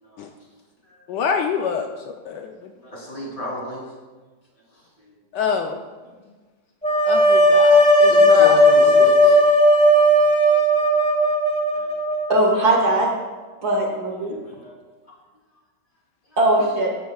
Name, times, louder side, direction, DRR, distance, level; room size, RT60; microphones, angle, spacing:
voice 1, 1.1-1.9 2.3-2.7 5.3-5.8 7.0-9.4, left 6 dB, 70° left, 4 dB, 1.2 m, -27 dB
voice 2, 2.8-3.9 6.1-6.2 7.2-7.6 8.1-9.3 11.7-11.9 14.2-14.7 16.3-16.4, equal, 25° left, -5 dB, 3.4 m, -35 dB
sound 1, 6.8-12.7, equal, 5° left, 1.3 m, -15 dB
voice 3, 12.3-13.1 13.6-14.4 16.4-16.9, right 1 dB, 55° right, 0 dB, 2.1 m, -19 dB
15.0 x 11.0 x 2.3 m, 1.3 s
omnidirectional pair, 2.0 m